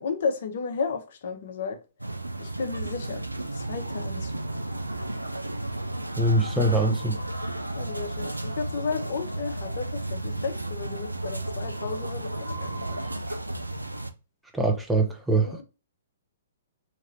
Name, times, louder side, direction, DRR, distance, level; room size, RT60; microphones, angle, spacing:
voice 1, 0.0-1.8 2.4-3.2 3.5-4.3 7.8-13.0 15.3-15.6, left 5 dB, 50° left, 0.6 m, -33 dB
sound 1, 2.0-14.1, right 2 dB, 85° right, 0.3 m, -33 dB
voice 2, 6.2-7.2 14.5-15.6, right 2 dB, 5° right, 0.5 m, -23 dB
2.9 x 2.9 x 2.6 m
figure-of-eight pair, 120°, 0 cm